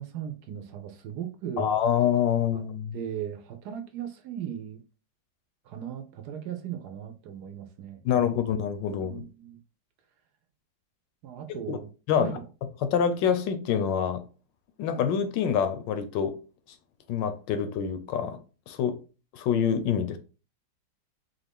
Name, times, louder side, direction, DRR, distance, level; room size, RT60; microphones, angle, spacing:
voice 1, 0.0-1.8 2.5-2.6 2.9-4.8 5.6-8.2 9.0-9.6 11.2-11.9 12.2-12.4, right 9 dB, 70° right, 1.0 m, -37 dB
voice 2, 1.6-2.9 8.0-9.2 11.7-11.8 12.1-12.4 12.8-14.2 14.8-16.3 17.1-18.4 18.7-19.0 19.3-20.2, left 8 dB, 80° left, 1.2 m, -26 dB
4.0 x 2.5 x 3.4 m
omnidirectional pair, 2.0 m